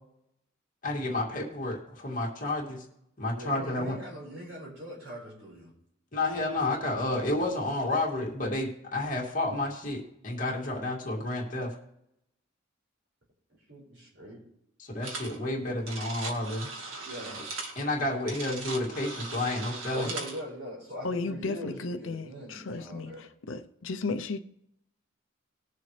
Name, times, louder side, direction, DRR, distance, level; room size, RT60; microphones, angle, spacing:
voice 1, 0.8-2.8 3.2-4.0 6.1-11.8 14.8-16.7 17.8-20.1, left 2 dB, 40° left, 2.5 m, -30 dB
voice 2, 3.3-5.7 13.7-14.4 17.0-17.4 19.9-23.2, equal, 65° right, 5.1 m, -41 dB
sound 1, 15.0-15.4 15.6-20.4, right 3 dB, 90° right, 1.9 m, -39 dB
voice 3, 21.0-24.4, left 3 dB, 70° left, 0.6 m, -34 dB
20.0 x 6.8 x 3.3 m
head